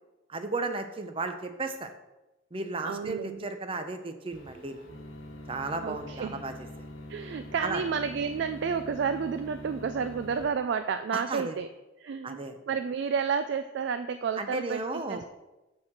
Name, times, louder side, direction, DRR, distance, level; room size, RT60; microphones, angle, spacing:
voice 1, 0.3-1.9 2.5-4.9 5.5-6.5 7.6-7.8 11.1-11.5 12.2-12.6 14.4-15.3, right 3 dB, 25° right, 7 dB, 0.6 m, -34 dB
voice 2, 2.8-3.5 5.8-6.4 7.1-11.7 12.0-15.3, right 6 dB, 60° right, 10 dB, 0.3 m, -31 dB
sound 1, 4.3-10.5, left 1 dB, 75° left, 1.1 m, -44 dB
7.1 x 4.6 x 6.5 m, 1.0 s
head